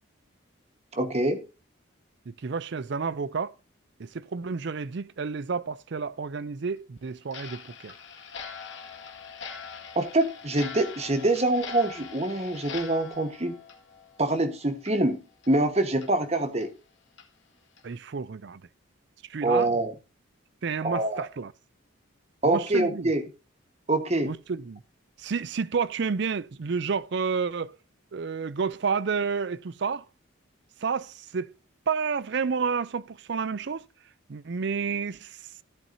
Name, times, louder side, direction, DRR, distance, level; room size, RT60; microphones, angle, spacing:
voice 1, 0.9-1.4 9.9-13.5 14.2-15.2 15.5-16.7 19.4-19.9 20.8-21.3 22.4-23.2 23.9-24.3, right 2 dB, 30° right, 1.3 m, -25 dB
voice 2, 2.3-3.5 4.0-7.9 17.8-18.6 19.3-19.7 20.6-21.5 22.4-23.1 24.2-24.8 25.2-27.8 28.1-30.0 30.8-31.5 31.9-33.8 34.3-35.4, right 5 dB, 55° right, 0.5 m, -30 dB
Clock, 7.3-14.5 14.8-14.9 15.4-15.5 16.0-16.1 16.6-16.7 17.2-17.3 17.8-17.9, left 6 dB, 60° left, 1.9 m, -42 dB
14.0 x 8.8 x 2.7 m
head